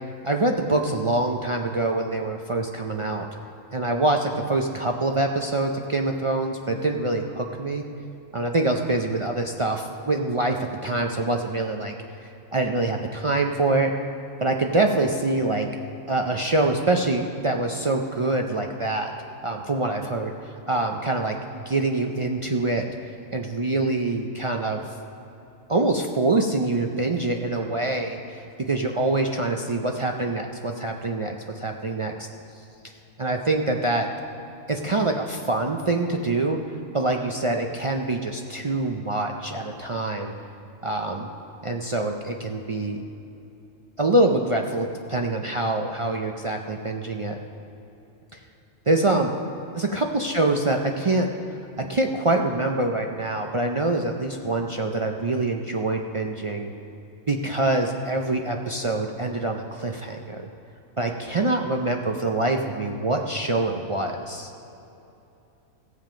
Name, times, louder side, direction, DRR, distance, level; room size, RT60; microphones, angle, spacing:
voice 1, 0.2-3.3 3.7-7.8 8.3-11.9 12.2-13.9 14.4-15.7 16.1-19.1 19.4-22.9 23.3-24.9 25.7-32.3 33.2-34.1 34.7-36.6 36.9-40.3 40.8-41.3 41.6-43.0 44.0-47.4 48.3-48.4 48.9-49.3 49.8-51.3 51.8-56.7 57.3-60.4 61.0-64.5, right 2 dB, 55° right, 2 dB, 0.3 m, -25 dB
15.0 x 7.5 x 5.1 m, 2.9 s
omnidirectional pair, 1.3 m